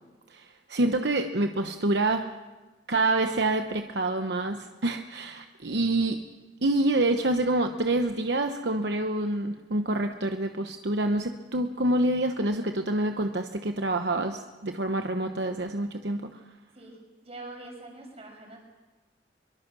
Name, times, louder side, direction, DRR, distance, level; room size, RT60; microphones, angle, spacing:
voice 1, 0.3-2.3 2.9-6.2 6.6-16.4, right 2 dB, 65° right, 6 dB, 1.0 m, -27 dB
voice 2, 16.7-18.6, right 2 dB, 35° right, 2 dB, 6.4 m, -44 dB
24.5 x 23.5 x 6.2 m, 1.2 s
head